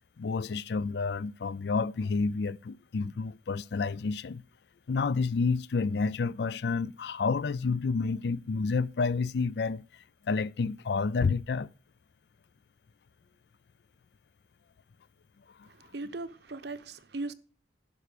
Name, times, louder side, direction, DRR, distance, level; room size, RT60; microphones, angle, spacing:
voice 1, 0.2-4.4 4.9-9.8 10.3-11.7 15.6-15.7, left 4 dB, 65° left, 0.4 m, -29 dB
voice 2, 15.7-17.3, right 2 dB, 65° right, 0.8 m, -39 dB
11.0 x 5.9 x 6.6 m
head